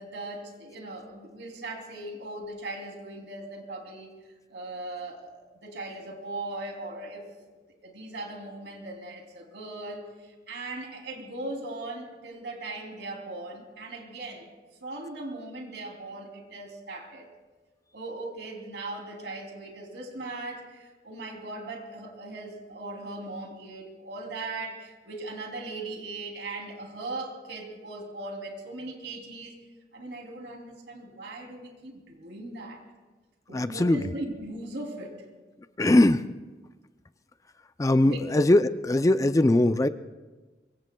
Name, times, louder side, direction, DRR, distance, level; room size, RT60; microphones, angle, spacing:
voice 1, 0.0-4.1 4.5-7.2 7.8-10.1 10.5-14.5 14.8-17.3 17.9-29.6 29.9-32.8 33.5-35.2 38.0-38.2, right 2 dB, 85° right, 2 dB, 3.0 m, -39 dB
voice 2, 33.5-34.0 35.8-36.2 37.8-39.9, left 1 dB, 20° left, 11 dB, 0.4 m, -21 dB
24.5 x 23.0 x 2.3 m, 1.2 s
head